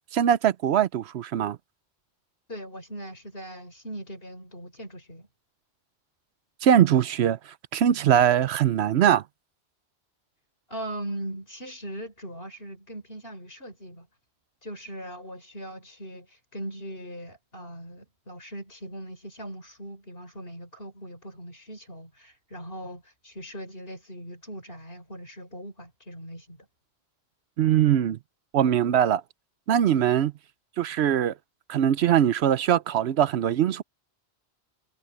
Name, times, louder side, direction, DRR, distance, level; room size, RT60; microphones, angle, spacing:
voice 1, 0.1-1.6 6.6-7.4 7.7-9.2 27.6-28.2 28.5-29.2 29.7-30.3 30.8-31.3 31.7-33.8, right 10 dB, 75° right, 0.9 m, -21 dB
voice 2, 2.5-5.3 10.7-14.1 14.6-26.7, right 1 dB, 60° left, 6.7 m, -40 dB
omnidirectional pair, 1.1 m